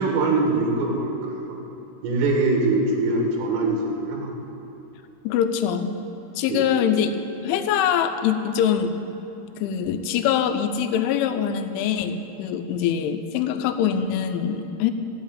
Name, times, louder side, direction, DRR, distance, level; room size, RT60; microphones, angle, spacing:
voice 1, 0.0-1.6 2.0-4.3 6.5-6.7, right 3 dB, 80° right, 0 dB, 4.2 m, -23 dB
voice 2, 5.2-5.9 6.4-7.1 7.4-8.9 9.6-14.9, left 8 dB, 80° left, 8 dB, 3.0 m, -23 dB
16.5 x 5.6 x 8.8 m, 2.8 s
omnidirectional pair, 5.8 m